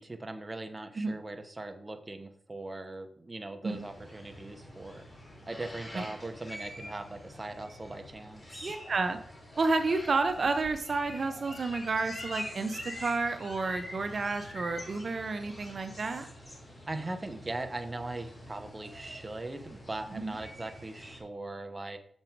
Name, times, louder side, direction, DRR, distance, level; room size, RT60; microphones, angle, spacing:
voice 1, 0.0-5.1 5.5-8.7 16.9-22.0, right 2 dB, 25° right, 6 dB, 1.0 m, -40 dB
sound 1, 3.7-21.2, equal, 35° left, 2.5 m, -47 dB
voice 2, 8.6-9.2 9.6-16.3 20.1-20.4, right 3 dB, 55° right, 7 dB, 0.7 m, -31 dB
Bird, 10.2-13.9 14.2-14.5 14.8-15.2 15.5-15.9 16.3-16.4, left 2 dB, 55° left, 3.1 m, -45 dB
6.9 x 5.5 x 4.6 m, 0.64 s
cardioid pair, 70°, 0 cm